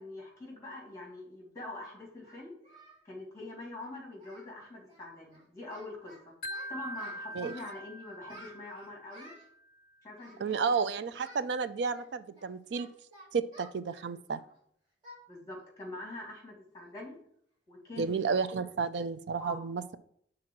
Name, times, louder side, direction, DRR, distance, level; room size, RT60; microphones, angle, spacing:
voice 1, 0.0-2.5 3.0-6.3 6.7-9.3 10.0-10.8 15.3-17.1 17.7-18.2 19.4-19.6, left 2 dB, 20° left, -1 dB, 2.3 m, -44 dB
Singing, 1.0-1.1 1.8-3.0 3.3-3.5 3.8-4.5 4.8-5.0 5.3-6.2 6.5-7.8 8.3-9.5 10.1-10.8 11.1-11.4 11.9-14.6 15.0-15.2 15.6-15.8 16.2-16.3 16.8-17.0, right 1 dB, 25° right, 3.1 m, -54 dB
Wind chime, 6.4-9.5, equal, 55° left, 0.5 m, -43 dB
voice 2, 10.4-12.9 13.3-14.4 18.0-20.0, right 5 dB, 75° right, 13 dB, 0.4 m, -32 dB
5.9 x 3.8 x 6.1 m, 0.66 s
head